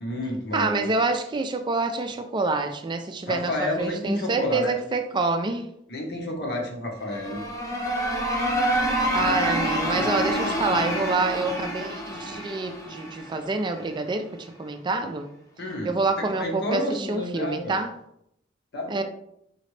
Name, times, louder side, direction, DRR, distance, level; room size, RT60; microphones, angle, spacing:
voice 1, 0.0-0.9 3.3-4.7 5.9-7.4 15.6-15.9 16.4-17.7 18.7-19.0, left 1 dB, 60° left, 0 dB, 1.1 m, -30 dB
voice 2, 0.5-5.7 8.4-8.6 9.1-15.3 15.8-17.9 18.9-19.0, right 3 dB, 25° right, 6 dB, 0.3 m, -27 dB
sound 1, 7.0-13.8, equal, 15° left, 0.8 m, -27 dB
4.2 x 3.8 x 3.2 m, 0.75 s
head